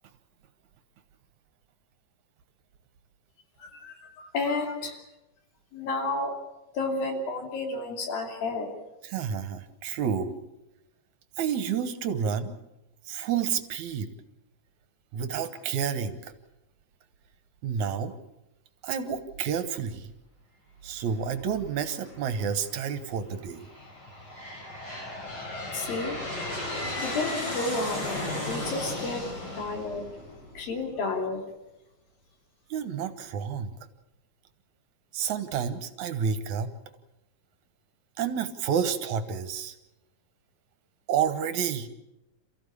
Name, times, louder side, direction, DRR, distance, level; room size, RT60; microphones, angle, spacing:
voice 1, 3.6-5.0 5.7-6.4 6.7-8.7 25.7-26.2 27.0-28.0 28.5-29.2 29.6-30.0 30.5-31.4, left 3 dB, 85° left, 3 dB, 4.7 m, -31 dB
voice 2, 9.0-10.3 11.4-12.5 13.1-14.1 15.1-16.3 17.6-18.1 18.8-20.1 20.8-23.6 32.7-33.7 35.1-36.7 38.2-39.7 41.1-41.9, right 7 dB, 65° right, 10 dB, 2.4 m, -29 dB
Aircraft, 22.0-22.6 23.3-30.9, left 1 dB, 35° left, 5.4 m, -35 dB
28.0 x 15.0 x 8.4 m, 0.94 s
omnidirectional pair, 4.0 m